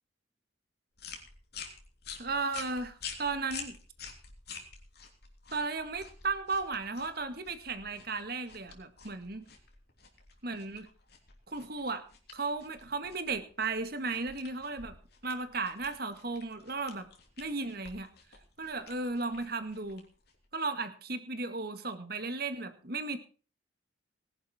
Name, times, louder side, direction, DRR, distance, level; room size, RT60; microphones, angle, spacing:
sound 1, 1.0-20.5, left 6 dB, 55° left, 3.3 m, -49 dB
voice 1, 2.2-3.8 5.5-9.5 10.4-10.9 11.5-12.0 12.3-14.9 15.2-17.1 17.4-18.1 18.6-20.0 20.5-23.2, right 3 dB, 50° right, 9 dB, 2.0 m, -35 dB
19.5 x 11.0 x 4.4 m, 0.38 s
head